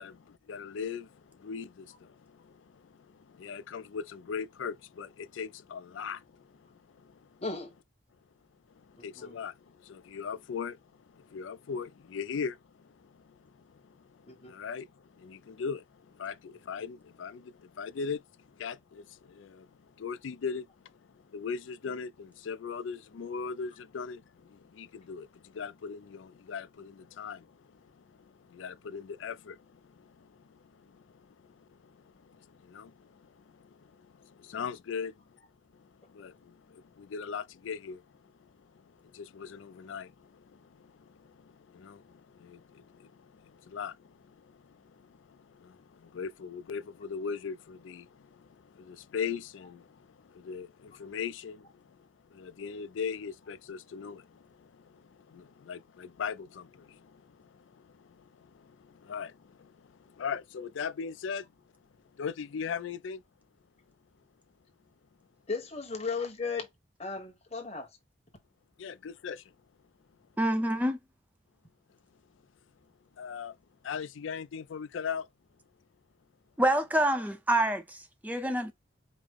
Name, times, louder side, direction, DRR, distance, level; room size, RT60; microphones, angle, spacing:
voice 1, 0.0-7.4 8.8-10.8 11.1-20.7 20.9-35.4 35.7-61.5 62.2-63.2 68.8-69.4 73.2-73.5 73.8-75.3, left 6 dB, 75° left, 0.4 m, -40 dB
voice 2, 7.4-7.7 8.9-9.4 14.3-14.6 65.5-66.7 67.0-67.9, left 4 dB, 30° left, 1.2 m, -36 dB
voice 3, 70.4-71.0 76.6-78.7, right 1 dB, 10° right, 0.5 m, -27 dB
5.1 x 2.0 x 3.5 m
head